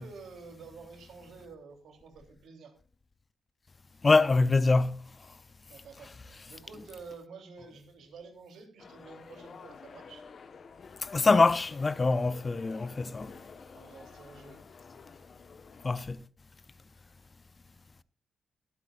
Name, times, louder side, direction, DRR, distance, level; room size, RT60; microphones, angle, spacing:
voice 1, 0.0-2.7 5.6-10.3 13.7-14.6, right 4 dB, 80° right, 3.2 m, -50 dB
voice 2, 4.0-5.0 11.1-13.3 15.8-16.2, left 3 dB, 30° left, 0.5 m, -24 dB
sound 1, 8.8-15.9, left 5 dB, 50° left, 1.2 m, -50 dB
23.5 x 8.3 x 2.5 m
cardioid pair, 115°, 0 cm